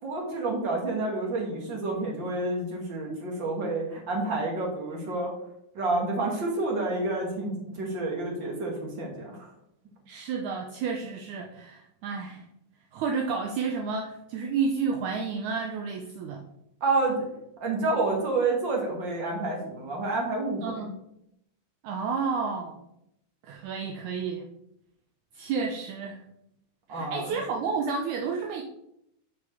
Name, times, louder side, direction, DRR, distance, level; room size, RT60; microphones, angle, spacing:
voice 1, 0.0-5.3 5.7-9.5 16.8-17.2 17.6-20.9 26.9-27.4, right 2 dB, 35° right, -1 dB, 2.4 m, -29 dB
voice 2, 10.1-12.4 12.9-16.5 20.6-20.9 21.8-22.8 23.4-24.4 25.3-26.2 26.9-28.6, right 5 dB, 75° right, 3 dB, 1.7 m, -31 dB
8.0 x 5.3 x 6.8 m, 0.79 s
omnidirectional pair, 4.3 m